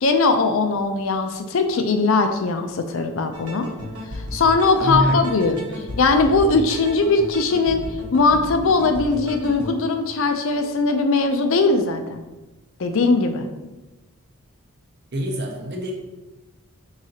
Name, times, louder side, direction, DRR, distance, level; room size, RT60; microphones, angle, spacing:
voice 1, 0.0-3.7 4.3-5.6 6.0-7.8 8.1-12.2 12.8-13.5, left 3 dB, 60° left, 7 dB, 0.4 m, -20 dB
sound 1, 3.3-9.7, left 1 dB, 80° right, 0.9 m, -34 dB
voice 2, 4.8-5.4 5.7-5.9 15.1-15.9, right 1 dB, 45° right, 1 dB, 0.7 m, -25 dB
4.8 x 3.7 x 2.8 m, 1.1 s
head